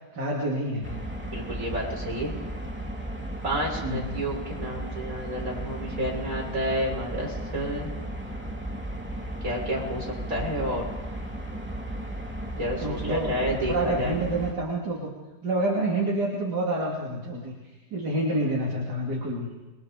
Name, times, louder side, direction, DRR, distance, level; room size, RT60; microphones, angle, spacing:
voice 1, 0.1-1.0 3.8-4.1 12.8-15.1 15.4-17.6 17.9-19.5, right 1 dB, 65° right, -4 dB, 3.6 m, -28 dB
sound 1, 0.8-14.5, right 1 dB, 5° right, 2.8 m, -35 dB
voice 2, 1.2-2.3 3.4-7.9 9.4-10.8 12.5-14.2, equal, 50° right, -2 dB, 6.8 m, -30 dB
28.0 x 23.0 x 5.2 m, 1.2 s
omnidirectional pair, 1.9 m